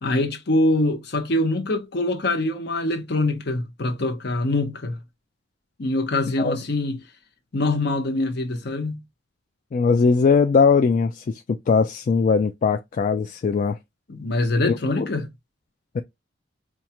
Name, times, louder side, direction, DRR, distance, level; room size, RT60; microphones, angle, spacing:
voice 1, 0.0-5.0 5.8-7.0 7.5-9.0 14.1-15.3, left 2 dB, 65° left, 0.9 m, -24 dB
voice 2, 9.7-13.8 14.7-14.8 15.9-16.0, left 5 dB, 45° left, 0.3 m, -20 dB
4.5 x 2.3 x 2.9 m
head